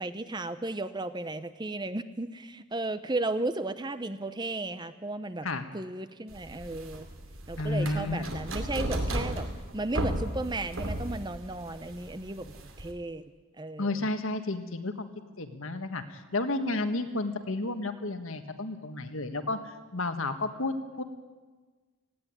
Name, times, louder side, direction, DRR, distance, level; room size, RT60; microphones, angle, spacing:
voice 1, 0.0-5.5 5.7-7.1 7.5-9.5 9.7-13.3 13.6-13.9, right 2 dB, 20° right, 12 dB, 0.7 m, -34 dB
sound 1, 6.3-12.9, right 1 dB, 70° right, 2.6 m, -35 dB
voice 2, 7.6-8.5 13.8-15.1 15.4-21.0, left 2 dB, 70° left, 8 dB, 1.6 m, -32 dB
18.0 x 16.0 x 9.7 m, 1.3 s
head